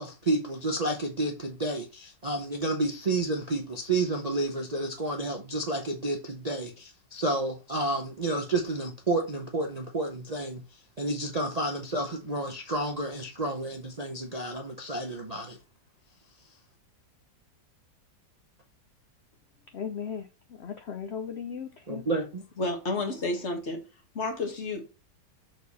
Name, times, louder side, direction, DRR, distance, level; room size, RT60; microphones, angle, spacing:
voice 1, 0.0-10.6 11.0-15.6 21.9-22.4, right 2 dB, 35° right, 0.7 m, -30 dB
voice 2, 19.7-22.1, left 7 dB, 60° left, 0.7 m, -37 dB
voice 3, 22.6-23.8 24.1-25.0, left 2 dB, 40° left, 1.5 m, -31 dB
6.6 x 4.7 x 4.1 m
omnidirectional pair, 1.9 m